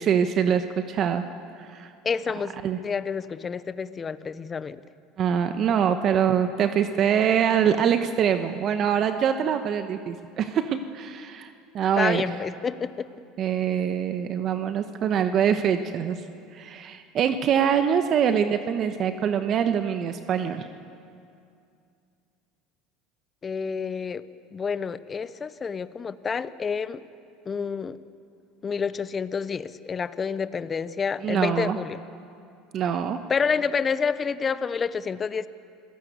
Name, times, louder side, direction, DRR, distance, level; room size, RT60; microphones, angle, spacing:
voice 1, 0.0-1.3 1.6-1.9 2.6-2.8 5.2-12.2 13.4-16.2 16.5-20.7 31.2-31.8 32.7-33.2, right 8 dB, 50° right, 9 dB, 1.2 m, -24 dB
voice 2, 2.0-2.5 2.8-4.8 5.7-5.8 12.0-13.1 23.4-24.2 24.5-27.0 27.5-28.0 28.6-32.0 33.3-35.5, left 6 dB, 30° left, 15 dB, 0.9 m, -28 dB
26.0 x 17.0 x 8.1 m, 2.5 s
hypercardioid pair, 90°, 0 cm